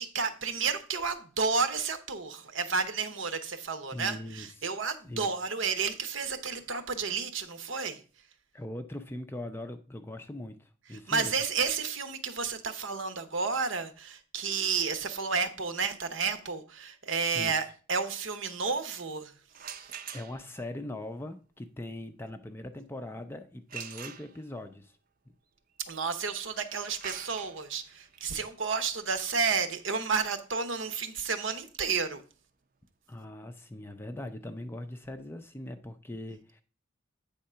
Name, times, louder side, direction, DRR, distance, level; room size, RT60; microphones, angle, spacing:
voice 1, 0.0-8.0 10.9-19.3 19.6-19.7 25.9-32.2, right 5 dB, 70° right, 0.9 m, -31 dB
voice 2, 3.9-4.5 5.0-5.3 8.5-11.3 17.3-17.6 20.1-24.9 25.3-25.4 33.1-36.6, left 1 dB, 10° left, 0.4 m, -41 dB
sound 1, 19.5-20.7 23.7-24.7 26.6-32.3, right 8 dB, 45° right, 0.6 m, -46 dB
8.6 x 3.7 x 5.5 m
head